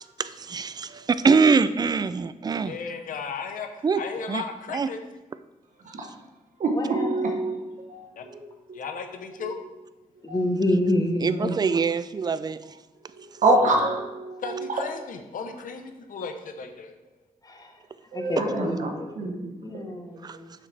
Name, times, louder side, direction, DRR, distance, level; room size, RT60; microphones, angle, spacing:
voice 1, 0.2-2.7 3.8-4.0 4.3-4.4 4.7-4.9 11.2-12.6 20.2-20.4, right 5 dB, 30° right, 13 dB, 0.3 m, -23 dB
voice 2, 2.6-5.0 8.1-8.3 8.7-9.6 14.4-16.9, left 5 dB, 90° left, 6 dB, 0.8 m, -35 dB
voice 3, 6.6-7.6 7.9-8.8 9.4-9.5 10.3-10.4 11.4-11.6 13.1-14.8 18.1-19.9, right 2 dB, 70° right, 2 dB, 1.0 m, -27 dB
voice 4, 10.2-11.6 17.4-17.7 18.1-19.3 19.6-20.5, left 1 dB, 30° left, 3 dB, 1.1 m, -27 dB
7.5 x 6.3 x 3.3 m, 1.1 s
wide cardioid pair, 100°, 14 cm